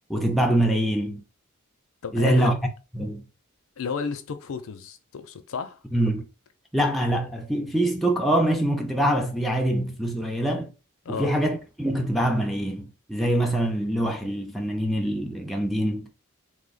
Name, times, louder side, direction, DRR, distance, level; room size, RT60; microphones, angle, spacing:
voice 1, 0.1-1.2 2.1-2.5 2.9-3.2 5.9-6.3 6.7-10.7 11.1-16.0, right 1 dB, ahead, 0.3 m, -24 dB
voice 2, 2.0-2.5 3.8-5.8 11.0-11.3, left 6 dB, 70° left, 0.4 m, -32 dB
3.1 x 2.1 x 3.9 m
head